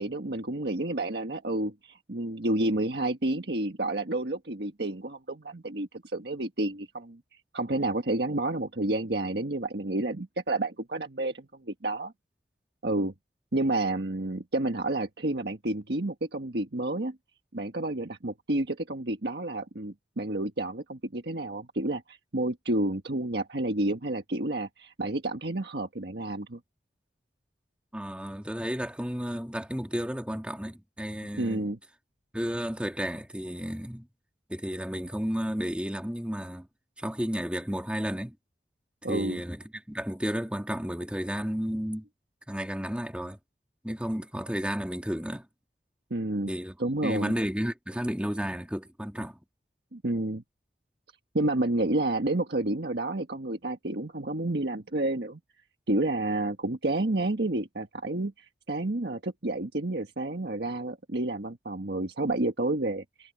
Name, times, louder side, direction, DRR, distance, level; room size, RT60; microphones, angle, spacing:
voice 1, 0.0-7.2 7.5-12.1 12.8-13.1 13.5-17.1 17.5-26.6 31.4-31.8 39.0-39.4 46.1-46.5 46.8-47.3 49.9-50.4 51.3-55.4 55.9-63.3, right 2 dB, 70° right, 1.5 m, -30 dB
voice 2, 27.9-31.7 32.3-34.1 34.5-36.7 37.0-38.4 39.1-42.0 42.5-43.4 43.8-45.5 46.5-46.8 47.0-49.4, equal, 5° right, 2.2 m, -32 dB
head